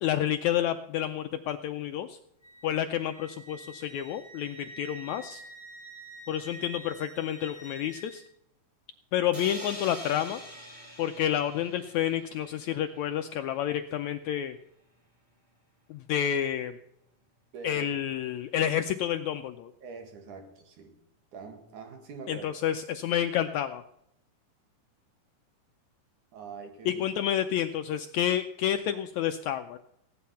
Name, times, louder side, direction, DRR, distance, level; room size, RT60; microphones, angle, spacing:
voice 1, 0.0-2.2 2.6-5.4 6.3-8.2 9.1-10.4 11.0-14.6 15.9-16.8 17.6-19.7 22.3-23.8 26.8-29.8, left 10 dB, 80° left, 8 dB, 1.7 m, -29 dB
Wind instrument woodwind instrument, 2.4-8.2, right 2 dB, 35° left, 2.7 m, -48 dB
sound 1, 9.3-13.1, equal, 15° right, 2.7 m, -44 dB
voice 2, 17.5-17.9 19.8-21.0 21.3-22.5 26.3-27.1, right 4 dB, 65° right, 6 dB, 3.2 m, -44 dB
16.5 x 10.5 x 5.6 m, 0.78 s
omnidirectional pair, 3.9 m